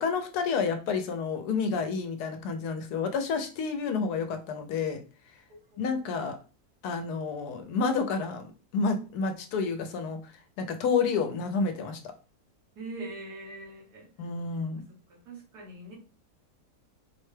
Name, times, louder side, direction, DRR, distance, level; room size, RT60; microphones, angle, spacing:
voice 1, 0.0-5.0 5.8-6.4 6.8-10.2 10.6-12.0 14.2-14.8, left 5 dB, 85° left, 1.2 m, -29 dB
voice 2, 12.7-14.1 15.1-15.9, right 2 dB, 85° right, 1.7 m, -42 dB
4.4 x 2.2 x 3.2 m
omnidirectional pair, 1.7 m